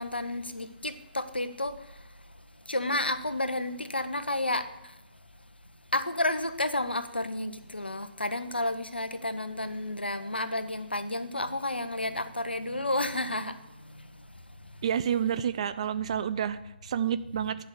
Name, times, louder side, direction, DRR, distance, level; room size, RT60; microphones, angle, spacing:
voice 1, 0.0-5.0 5.9-14.8, left 1 dB, 80° left, 0.9 m, -32 dB
voice 2, 14.8-17.6, right 9 dB, 35° right, 0.5 m, -29 dB
10.0 x 5.5 x 8.0 m
figure-of-eight pair, 140°, 5 cm